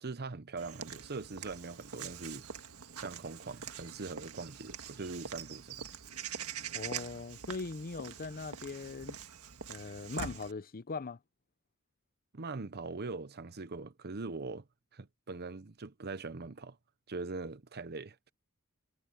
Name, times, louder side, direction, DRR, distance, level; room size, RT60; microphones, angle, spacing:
voice 1, 0.0-2.5 3.0-5.9 12.3-14.7 14.9-16.8 17.1-18.2, right 3 dB, 50° right, 0.9 m, -42 dB
Walk footsteps / Bird vocalization bird call bird song, 0.6-10.5, right 7 dB, 80° right, 1.7 m, -44 dB
voice 2, 6.7-9.2 9.7-11.2, left 4 dB, 40° left, 0.7 m, -40 dB
head